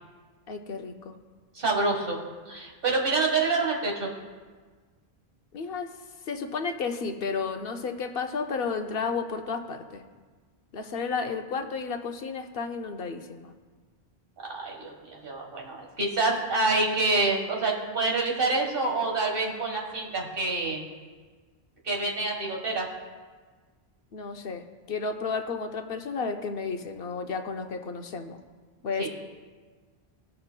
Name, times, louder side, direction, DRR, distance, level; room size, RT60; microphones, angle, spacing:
voice 1, 0.5-1.1 5.5-5.9 6.3-10.0 10.7-13.5 24.1-28.4 28.8-29.1, left 5 dB, 65° left, 5 dB, 0.9 m, -32 dB
voice 2, 1.5-2.2 2.5-4.1 14.5-20.8 21.8-22.9 29.0-29.1, right 3 dB, 60° right, 0 dB, 1.6 m, -27 dB
19.0 x 6.6 x 2.2 m, 1.4 s
omnidirectional pair, 1.1 m